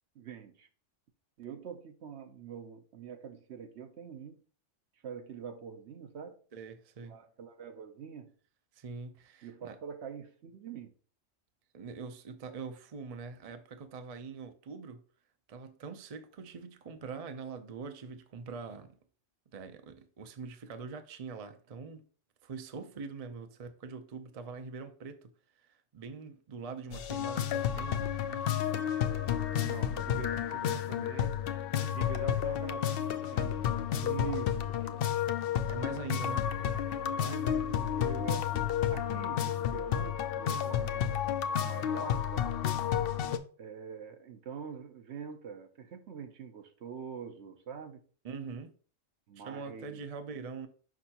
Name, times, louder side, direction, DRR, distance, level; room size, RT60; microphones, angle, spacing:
voice 1, 0.1-0.7 1.4-4.4 5.0-6.4 7.0-8.3 9.4-10.9 29.6-33.0 33.3-35.3 37.1-41.2 41.6-42.5 43.6-48.0 49.3-50.1, right 7 dB, 65° right, 1.0 m, -45 dB
voice 2, 6.5-7.2 8.7-9.8 11.7-15.0 15.5-18.9 19.5-22.0 22.4-25.3 25.6-28.0 28.3-28.7 35.7-36.5 48.2-48.7 49.4-50.7, right 5 dB, 45° right, 0.5 m, -43 dB
sound 1, 26.9-43.4, left 9 dB, 60° left, 0.7 m, -31 dB
6.1 x 5.4 x 2.8 m
omnidirectional pair, 1.3 m